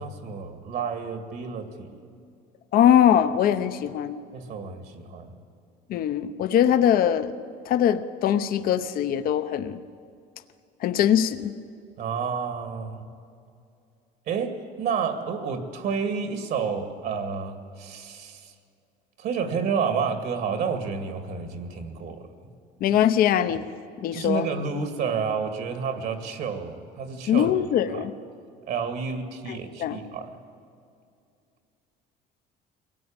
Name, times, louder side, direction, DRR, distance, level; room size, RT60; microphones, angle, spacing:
voice 1, 0.0-1.9 4.3-5.3 12.0-13.0 14.3-18.5 19.2-22.3 24.1-27.5 27.9-28.1 28.7-30.4, right 6 dB, 60° right, 8 dB, 2.3 m, -30 dB
voice 2, 2.7-4.2 5.9-7.3 7.7-9.8 10.8-11.5 22.8-23.7 24.0-24.5 27.3-28.1 29.5-30.0, left 10 dB, 55° left, 10 dB, 0.9 m, -22 dB
23.5 x 17.0 x 8.9 m, 2.5 s
cardioid pair, 130°, 18 cm